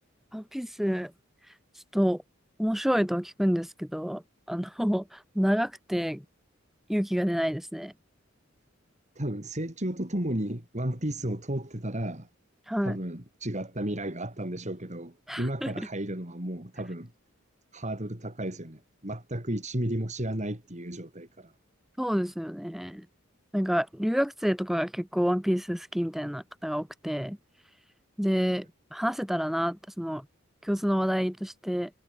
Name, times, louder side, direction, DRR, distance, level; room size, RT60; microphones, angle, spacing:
voice 1, 0.3-1.1 1.9-2.2 2.6-4.2 4.5-6.2 6.9-7.9 12.7-13.0 15.3-15.9 22.0-23.1 23.5-27.4 28.2-28.7 28.9-30.2 30.6-31.9, equal, ahead, 0.6 m, -28 dB
voice 2, 9.2-12.3 12.8-17.1 17.7-21.5, right 1 dB, 35° right, 4.4 m, -33 dB
head